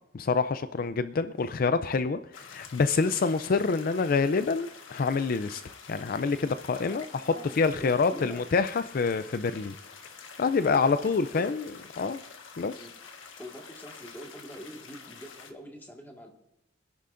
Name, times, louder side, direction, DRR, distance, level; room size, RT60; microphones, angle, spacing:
voice 1, 0.1-5.6 5.9-9.7 10.4-11.6 12.0-12.2 12.6-12.8, left 4 dB, 50° left, 11 dB, 0.4 m, -27 dB
sound 1, 2.3-15.5, left 5 dB, 85° left, 1.4 m, -48 dB
voice 2, 6.9-7.5 7.8-8.5 10.7-11.6 12.7-13.0 13.4-16.3, equal, 10° left, 0 dB, 1.8 m, -45 dB
25.0 x 11.0 x 2.6 m, 0.83 s
head